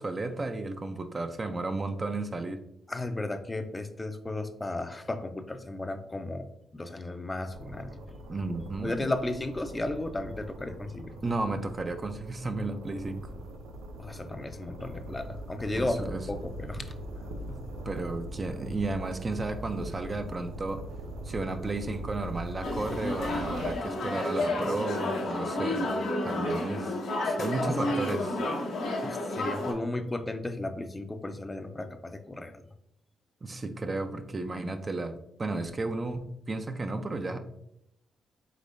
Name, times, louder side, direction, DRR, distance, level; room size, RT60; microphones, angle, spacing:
voice 1, 0.0-2.6 8.3-9.1 11.2-13.3 15.7-16.3 17.5-20.8 21.2-25.9 26.2-26.9 27.4-28.4 33.4-37.4, right 2 dB, 35° right, 7 dB, 0.5 m, -33 dB
voice 2, 2.9-6.5 6.7-7.9 8.8-11.1 14.0-16.8 27.2-27.4 29.0-32.5, left 2 dB, 20° left, 7 dB, 0.5 m, -34 dB
sound 1, 7.5-23.8, right 1 dB, 85° right, 0.5 m, -41 dB
sound 2, 22.6-29.7, left 2 dB, 80° left, 1.1 m, -31 dB
5.1 x 3.6 x 2.6 m, 0.78 s
supercardioid pair, 55°, 0 cm